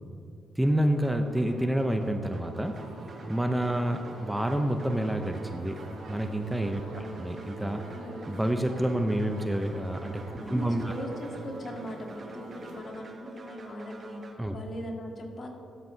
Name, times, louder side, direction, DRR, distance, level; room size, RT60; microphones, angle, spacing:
voice 1, 0.6-2.7 3.3-5.8 6.1-7.8 8.3-10.2 10.5-10.9 14.4-14.6, right 1 dB, 5° right, 5 dB, 0.7 m, -28 dB
sound 1, 0.6-14.3, right 1 dB, 40° right, 1.7 m, -47 dB
sound 2, 2.7-12.8, right 3 dB, 85° right, 1.8 m, -46 dB
voice 2, 6.8-7.2 7.9-8.2 10.4-14.2 14.5-15.5, equal, 50° left, 0 dB, 2.0 m, -40 dB
15.5 x 12.5 x 2.8 m, 2.6 s
cardioid pair, 80°, 0 cm